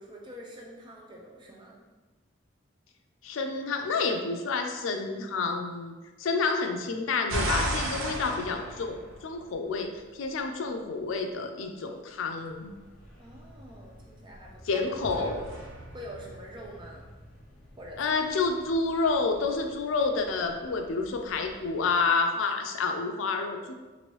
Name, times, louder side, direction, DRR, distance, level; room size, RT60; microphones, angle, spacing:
voice 1, 0.0-1.8 5.0-5.1 7.8-8.2 13.2-15.5 15.9-17.1 17.8-18.0, equal, 25° right, -2 dB, 0.4 m, -45 dB
voice 2, 3.2-12.7 14.7-15.4 18.0-23.7, left 4 dB, 85° left, 4 dB, 0.4 m, -29 dB
sound 1, 7.3-9.7 15.0-17.1, right 1 dB, 85° right, 0.5 m, -34 dB
sound 2, 12.4-22.0, equal, 45° left, 0.7 m, -52 dB
3.0 x 2.6 x 3.0 m, 1.2 s
head